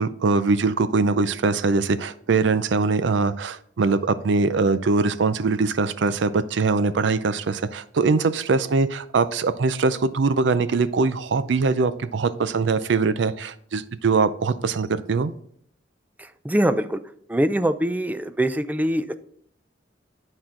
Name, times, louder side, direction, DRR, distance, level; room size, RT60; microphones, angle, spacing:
voice 1, 0.0-15.3, right 4 dB, 75° right, 14 dB, 0.5 m, -22 dB
voice 2, 16.2-17.0 17.3-19.1, right 1 dB, 10° right, 11 dB, 0.4 m, -23 dB
10.5 x 4.4 x 3.7 m, 0.65 s
head